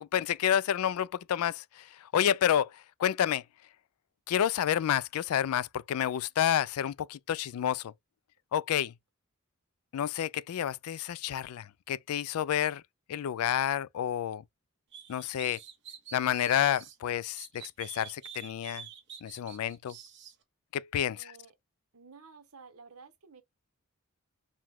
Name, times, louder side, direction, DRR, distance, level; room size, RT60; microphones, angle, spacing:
voice 1, 0.0-2.7 3.0-3.4 4.3-7.9 8.5-8.9 9.9-12.8 13.1-14.4 15.1-15.6 16.1-18.8 19.2-19.9 20.7-21.2, left 10 dB, 85° left, 0.3 m, -29 dB
sound 1, 14.9-17.0 17.4-20.3, right 7 dB, 55° right, 1.1 m, -47 dB
voice 2, 21.1-21.5 21.9-23.4, right 5 dB, 85° right, 1.0 m, -53 dB
4.8 x 2.2 x 3.5 m
head